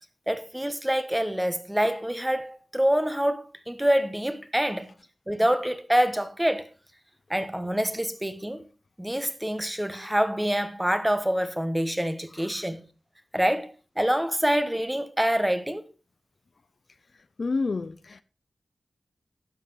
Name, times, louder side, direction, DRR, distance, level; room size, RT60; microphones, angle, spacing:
voice 1, 0.3-4.9 5.3-6.7 7.3-8.6 9.0-12.8 13.3-15.8, equal, 10° right, 1.2 m, -26 dB
voice 2, 17.4-18.2, left 3 dB, 55° left, 0.5 m, -30 dB
12.0 x 7.6 x 4.0 m
wide cardioid pair, 90°, 0 cm